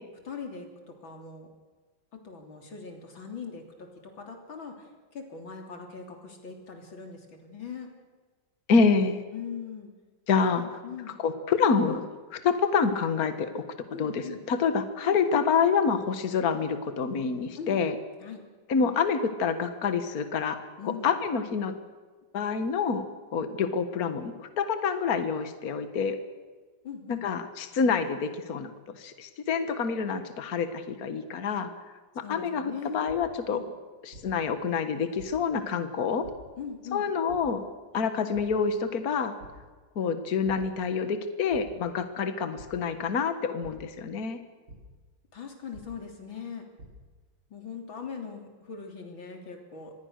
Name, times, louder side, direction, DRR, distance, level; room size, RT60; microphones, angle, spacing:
voice 1, 0.2-1.5 2.1-4.9 5.1-7.9 9.3-9.9 10.5-11.2 13.9-14.4 15.0-15.2 17.6-17.9 18.2-18.4 20.8-21.1 26.8-27.3 32.2-33.1 33.5-33.7 36.6-37.1 45.3-46.7 47.5-49.9, left 6 dB, 80° left, 3 dB, 4.0 m, -41 dB
voice 2, 8.7-9.2 10.3-10.8 11.2-13.6 14.0-18.0 18.7-21.7 22.3-23.0 23.3-26.2 27.2-31.7 32.2-33.6 34.0-36.3 36.9-37.7 37.9-39.4 40.0-44.4, left 5 dB, 50° left, 10 dB, 1.9 m, -27 dB
sound 1, 33.0-33.1 34.1-34.2 35.2-35.3 36.2-36.3 37.3-37.4 38.3-38.4 38.9-39.1 39.4-39.5 40.4-40.5 41.5-41.6 42.6-42.7 43.6-43.7 44.7-44.8 45.7-45.8 46.5-46.9, right 2 dB, 75° right, 6.7 m, -46 dB
25.5 x 20.5 x 6.6 m, 1.4 s
omnidirectional pair, 2.1 m